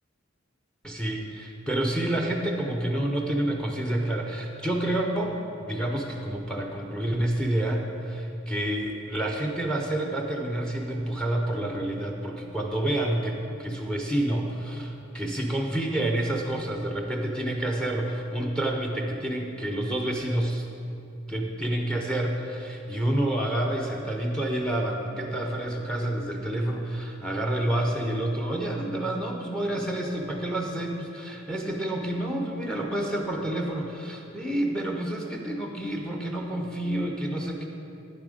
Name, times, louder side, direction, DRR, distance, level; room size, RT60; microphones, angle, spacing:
voice 1, 0.8-5.4 5.6-20.7 21.3-37.7, right 1 dB, 5° left, 1 dB, 0.6 m, -28 dB
9.1 x 7.4 x 5.0 m, 2.8 s
head